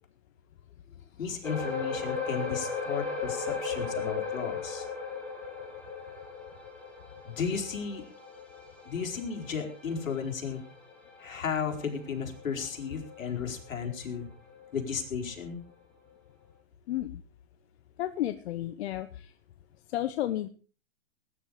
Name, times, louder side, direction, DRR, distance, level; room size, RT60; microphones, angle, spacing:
voice 1, 1.2-4.8 7.3-8.0 8.8-10.6 11.2-14.3 14.7-15.6, left 6 dB, 75° left, 2 dB, 4.8 m, -34 dB
sound 1, 1.4-14.1 14.5-14.7 15.2-15.3, left 5 dB, 5° left, 4.6 m, -37 dB
voice 2, 16.9-17.2 18.0-19.3 19.9-20.5, left 13 dB, 55° left, 11 dB, 1.1 m, -32 dB
19.5 x 10.5 x 4.9 m, 0.38 s
hypercardioid pair, 130°, 40 cm